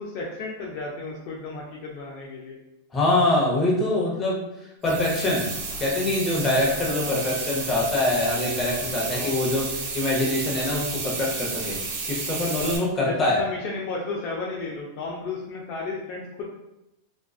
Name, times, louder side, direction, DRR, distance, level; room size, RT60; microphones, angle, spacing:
voice 1, 0.0-2.6 6.9-7.1 9.1-9.4 13.0-16.5, left 3 dB, 55° left, -2 dB, 0.4 m, -33 dB
voice 2, 2.9-4.4 4.8-5.5 5.8-11.8 12.1-13.4, left 2 dB, 25° left, -4 dB, 0.8 m, -24 dB
sound 1, 4.8-12.8, right 4 dB, 55° right, 0.6 m, -32 dB
2.4 x 2.3 x 2.3 m, 0.92 s
supercardioid pair, 130°, 0 cm